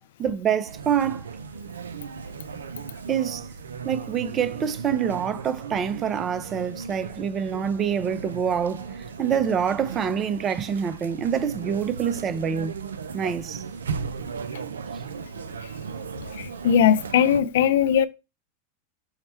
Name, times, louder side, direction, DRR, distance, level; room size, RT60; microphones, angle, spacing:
voice 1, 0.2-1.3 3.1-3.5 3.8-12.7 13.1-13.6, right 8 dB, 30° right, 0.5 m, -26 dB
sound 1, 0.6-17.4, right 5 dB, 90° right, 0.3 m, -36 dB
voice 2, 16.3-18.1, left 8 dB, 75° left, 0.3 m, -19 dB
5.6 x 2.1 x 4.3 m
hypercardioid pair, 105°, 0 cm